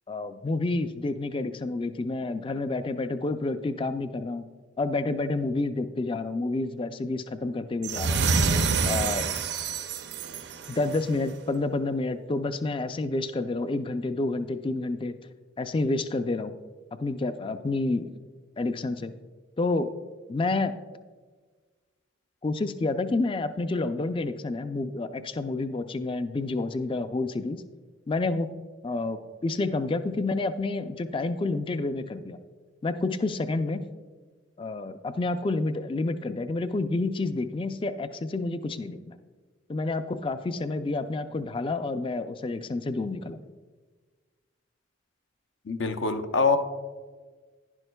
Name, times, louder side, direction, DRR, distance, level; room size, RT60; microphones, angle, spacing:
voice 1, 0.1-4.5 4.8-8.3 8.8-9.4 10.7-15.1 15.6-16.6 17.0-18.1 18.6-19.1 19.6-19.9 20.3-20.8 22.4-27.6 28.1-28.5 28.8-32.4 32.8-33.8 34.6-39.2 39.7-43.5, left 2 dB, 25° left, 11 dB, 0.3 m, -29 dB
sound 1, 7.8-11.1, right 4 dB, 60° right, 0.5 m, -27 dB
voice 2, 45.7-46.6, left 4 dB, 75° left, 8 dB, 0.6 m, -24 dB
10.5 x 10.5 x 2.3 m, 1.4 s
head